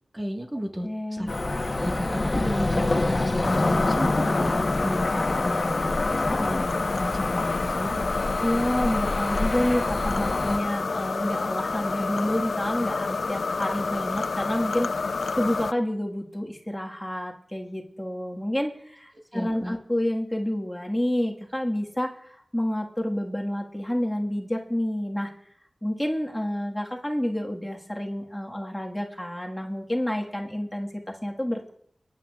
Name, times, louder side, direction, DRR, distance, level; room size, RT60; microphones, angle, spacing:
voice 1, 0.1-1.3 1.8-8.3 19.3-19.8, equal, 25° right, 1 dB, 1.5 m, -33 dB
voice 2, 0.8-1.3 8.4-25.3 25.8-31.7, left 1 dB, 10° left, 0 dB, 1.6 m, -29 dB
Cricket / Motor vehicle (road), 1.3-10.6, left 2 dB, 50° left, 1.0 m, -27 dB
sound 1, 3.4-15.7, left 4 dB, 80° left, 0.4 m, -29 dB
25.0 x 10.0 x 2.4 m, 0.67 s
wide cardioid pair, 50°, 0 cm